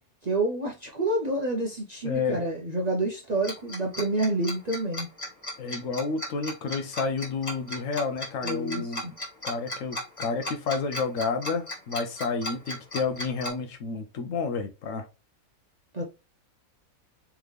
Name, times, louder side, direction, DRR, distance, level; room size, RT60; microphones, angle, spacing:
voice 1, 0.2-5.1 8.4-9.1 15.9-16.0, right 2 dB, 40° right, 0.6 m, -28 dB
voice 2, 2.0-2.4 5.6-9.0 9.4-15.0, left 4 dB, 65° left, 1.0 m, -30 dB
Tick-tock, 3.4-13.5, left 1 dB, 20° left, 1.6 m, -35 dB
3.6 x 3.4 x 3.2 m
omnidirectional pair, 1.6 m